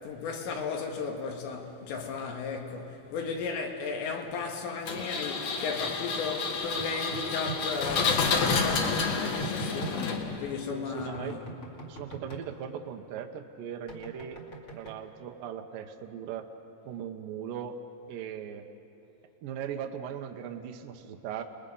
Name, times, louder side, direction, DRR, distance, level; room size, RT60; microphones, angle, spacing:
voice 1, 0.0-11.5, left 5 dB, 75° left, 3.9 m, -35 dB
Engine, 4.9-10.5, left 4 dB, 55° left, 2.7 m, -29 dB
sound 1, 6.8-7.6 8.5-10.0 11.0-12.4 13.9-15.0, right 5 dB, 40° left, 2.2 m, -40 dB
voice 2, 10.7-11.4 11.9-14.4 14.7-16.5 16.9-17.8 18.1-18.7 19.4-21.4, right 9 dB, 75° right, 2.0 m, -38 dB
29.5 x 20.5 x 5.5 m
omnidirectional pair, 5.2 m